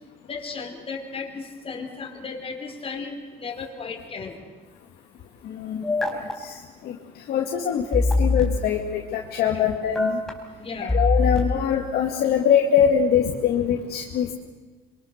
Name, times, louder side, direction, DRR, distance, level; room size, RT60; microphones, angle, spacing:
voice 1, 0.3-4.4 9.4-9.7 10.6-11.0 12.3-12.4, left 4 dB, 35° left, 3 dB, 3.9 m, -35 dB
sound 1, 5.8-6.3 7.9-8.4 10.0-10.3 10.9-11.4, left 2 dB, 5° left, 4.5 m, -21 dB
voice 2, 7.3-10.2 10.9-14.3, left 8 dB, 70° left, 1 dB, 2.2 m, -22 dB
26.5 x 24.0 x 6.7 m, 1.3 s
cardioid pair, 110°, 17 cm